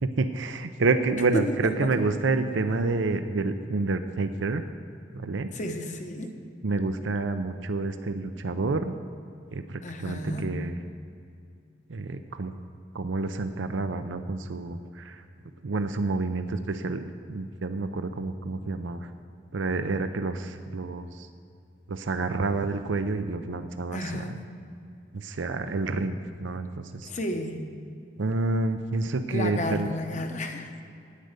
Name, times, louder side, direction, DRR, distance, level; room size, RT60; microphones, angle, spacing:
voice 1, 0.0-4.6 5.1-5.5 6.6-9.0 9.5-10.8 11.9-12.5 12.9-15.2 15.6-19.1 19.5-21.3 21.9-24.2 25.1-26.7 27.0-27.1 28.2-29.9, right 3 dB, 80° right, 9 dB, 0.6 m, -28 dB
voice 2, 1.3-2.0 5.5-6.3 9.8-10.5 23.9-24.4 27.0-27.7 29.3-30.8, left 1 dB, 40° left, 5 dB, 1.0 m, -32 dB
10.0 x 9.2 x 6.7 m, 2.5 s
head